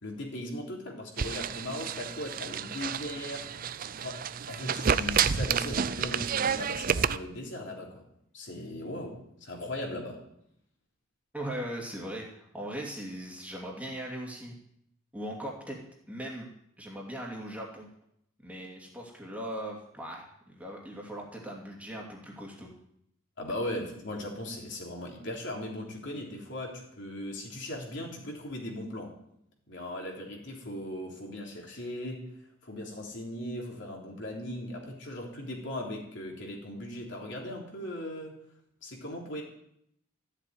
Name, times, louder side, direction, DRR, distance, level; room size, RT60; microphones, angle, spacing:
voice 1, 0.0-3.5 4.0-8.0 8.3-10.2 23.4-29.1 29.7-32.3 32.6-38.4 38.8-39.4, left 1 dB, 60° left, -1 dB, 3.5 m, -38 dB
sound 1, 1.2-7.2, right 7 dB, 40° right, 0.4 m, -30 dB
voice 2, 11.3-14.5 15.1-15.8 16.1-16.5 16.8-17.9 18.4-22.7, right 1 dB, 5° right, -2 dB, 2.6 m, -39 dB
14.0 x 7.5 x 9.4 m, 0.75 s
head